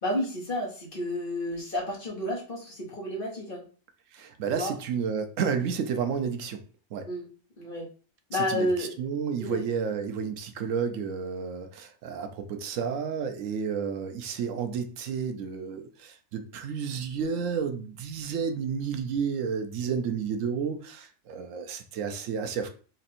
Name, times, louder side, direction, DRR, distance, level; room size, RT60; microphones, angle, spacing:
voice 1, 0.0-3.6 4.5-4.7 7.0-7.3 7.6-7.9 8.3-8.9 9.4-9.6, left 1 dB, 45° left, -3 dB, 1.6 m, -31 dB
voice 2, 4.1-6.6 6.9-7.1 8.3-22.7, right 6 dB, 90° right, 8 dB, 1.0 m, -31 dB
4.2 x 2.6 x 4.2 m, 0.39 s
omnidirectional pair, 1.3 m